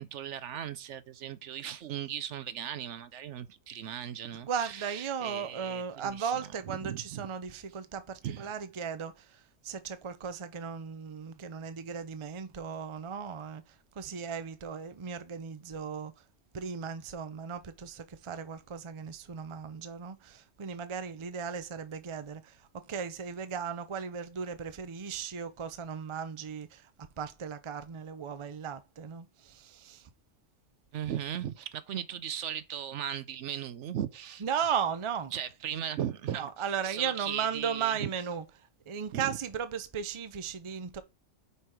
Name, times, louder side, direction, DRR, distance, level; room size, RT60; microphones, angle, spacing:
voice 1, 0.0-6.3 6.7-7.3 8.2-8.5 30.9-34.4 35.3-36.5 36.8-38.1 39.1-39.4, right 10 dB, 70° right, 0.9 m, -37 dB
voice 2, 4.4-13.6 13.9-16.1 16.5-26.9 27.2-30.1 34.4-35.3 36.3-38.4 38.9-41.0, right 7 dB, 35° right, 0.5 m, -36 dB
5.6 x 4.5 x 4.8 m
omnidirectional pair, 1.3 m